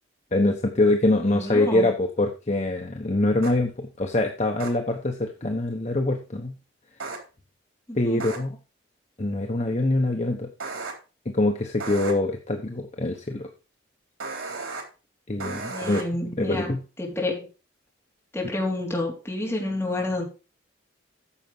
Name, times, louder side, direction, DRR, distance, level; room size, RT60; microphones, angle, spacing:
voice 1, 0.3-6.5 7.9-8.6 9.2-10.5 11.2-13.5 15.3-16.0 16.4-16.8, left 2 dB, 35° left, 3 dB, 1.0 m, -24 dB
voice 2, 1.3-1.9 7.9-8.2 15.7-16.7 17.0-17.5 18.3-20.2, left 2 dB, 10° left, -3 dB, 3.6 m, -29 dB
sound 1, 3.4-3.5 4.6-4.7 7.0-7.2 8.2-8.4 10.6-10.9 11.8-12.1 14.2-14.8 15.4-16.0, right 4 dB, 90° right, 3.7 m, -33 dB
10.0 x 7.1 x 5.4 m, 0.32 s
head